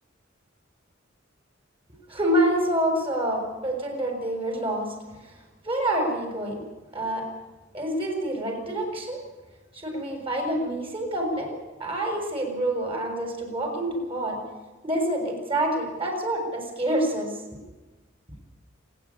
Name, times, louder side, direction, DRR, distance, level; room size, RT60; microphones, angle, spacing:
voice 1, 2.1-4.9 5.6-6.6 6.9-7.3 7.7-9.2 9.7-14.4 14.8-17.3, right 1 dB, 25° right, 2 dB, 6.7 m, -27 dB
27.0 x 10.5 x 9.9 m, 1.2 s
head